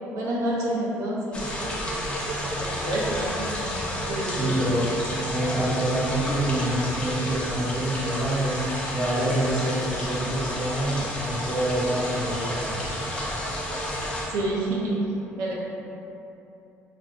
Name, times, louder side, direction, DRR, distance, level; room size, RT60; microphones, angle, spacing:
voice 1, 0.1-2.2 2.6-3.5 4.1-4.7 14.2-15.1 15.4-15.5, right 1 dB, 85° right, -4 dB, 0.7 m, -29 dB
sound 1, 1.3-14.3, equal, 20° left, 0.8 m, -31 dB
voice 2, 4.3-4.9 5.3-8.6 8.9-12.8, right 1 dB, 5° right, -10 dB, 1.4 m, -27 dB
5.5 x 2.5 x 2.3 m, 2.9 s
cardioid pair, 105°, 5 cm